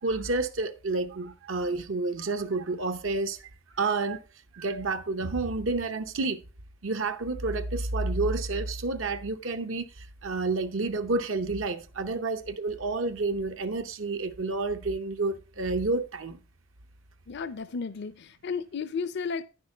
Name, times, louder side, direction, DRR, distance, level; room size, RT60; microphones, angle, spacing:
voice 1, 0.0-4.2 4.5-6.4 6.8-16.4, right 3 dB, 75° right, 0.8 m, -30 dB
voice 2, 17.3-19.4, left 5 dB, 60° left, 0.5 m, -33 dB
9.7 x 6.2 x 4.3 m
head